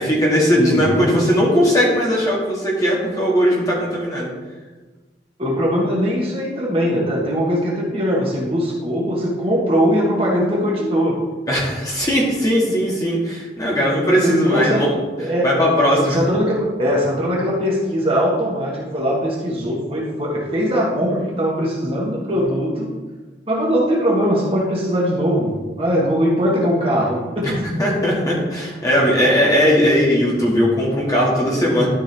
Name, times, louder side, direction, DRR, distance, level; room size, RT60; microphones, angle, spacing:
voice 1, 0.0-4.3 11.5-14.9 15.4-16.2 27.4-27.5 27.8-31.9, equal, 20° left, -5 dB, 2.0 m, -18 dB
voice 2, 0.6-1.1 5.4-11.2 13.1-13.2 14.2-14.9 15.2-15.7 16.1-22.9 23.5-27.6, equal, 30° right, -4 dB, 1.6 m, -20 dB
12.0 x 5.1 x 3.5 m, 1.3 s
head